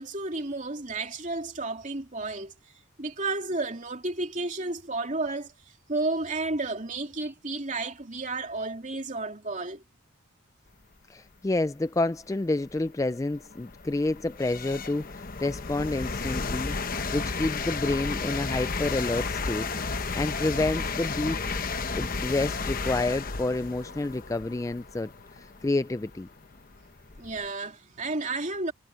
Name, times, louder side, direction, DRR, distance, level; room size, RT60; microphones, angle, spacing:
voice 1, 0.0-2.5 3.0-5.5 5.9-9.8 26.8-26.9 27.2-28.7, right 3 dB, 35° right, 3.0 m, -32 dB
voice 2, 11.1-16.8 17.1-21.4 21.9-25.1 25.4-26.3, left 2 dB, 15° left, 0.3 m, -29 dB
sound 1, 12.0-12.1 12.7-27.5, left 4 dB, 40° left, 0.9 m, -33 dB
head